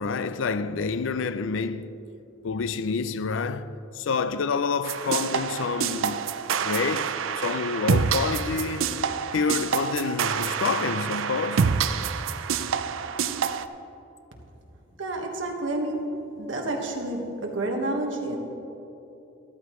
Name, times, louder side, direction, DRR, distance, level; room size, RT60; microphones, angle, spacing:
voice 1, 0.0-2.0 2.4-6.3 6.6-8.9 9.3-11.7, left 4 dB, 75° left, 0.4 m, -28 dB
sound 1, 4.8-13.7, right 6 dB, 85° right, 0.5 m, -27 dB
voice 2, 15.0-16.1 16.4-18.4, right 2 dB, 70° right, 1.5 m, -29 dB
14.0 x 13.0 x 3.1 m
head